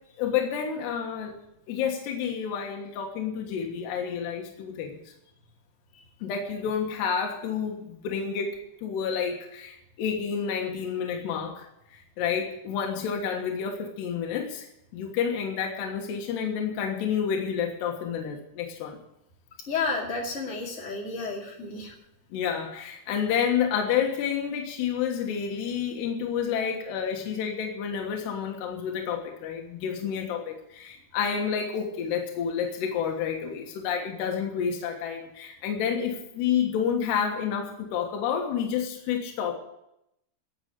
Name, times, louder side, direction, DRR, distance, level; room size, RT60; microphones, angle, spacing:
voice 1, 0.2-1.3 1.7-5.0 6.2-14.7 14.9-19.0 22.3-39.6, left 7 dB, 75° left, 1 dB, 3.6 m, -29 dB
voice 2, 19.7-21.9, left 4 dB, 25° left, -3 dB, 1.6 m, -31 dB
12.0 x 8.1 x 9.7 m, 0.80 s
omnidirectional pair, 4.9 m